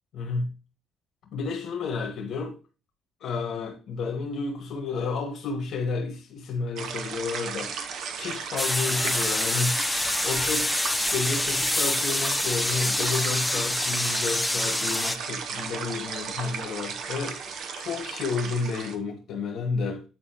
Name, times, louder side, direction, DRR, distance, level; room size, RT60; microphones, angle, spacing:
voice 1, 0.1-0.5 1.3-2.6 3.2-9.9 10.2-10.7 11.0-20.0, left 4 dB, 70° left, 1.7 m, -31 dB
sound 1, 6.8-19.0, right 6 dB, 70° right, 0.9 m, -35 dB
sound 2, 8.6-15.2, left 2 dB, 10° left, 0.4 m, -26 dB
9.2 x 4.2 x 2.9 m
cardioid pair, 100°, 0 cm